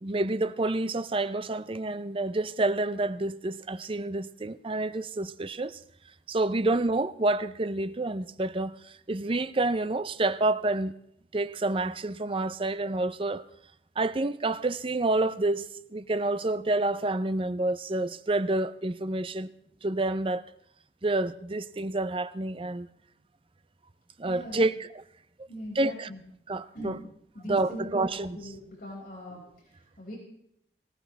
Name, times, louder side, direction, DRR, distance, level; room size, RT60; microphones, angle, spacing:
voice 1, 0.0-5.8 6.3-10.9 11.3-13.5 14.0-19.5 19.8-20.4 21.0-22.9 24.2-25.0 25.7-26.1 26.5-27.0 27.4-28.5, right 2 dB, 30° right, 0.6 m, -28 dB
voice 2, 24.2-24.6 25.5-26.2 26.7-27.0 27.4-29.4 30.0-30.2, equal, 55° left, 5.8 m, -40 dB
19.0 x 18.0 x 3.4 m
head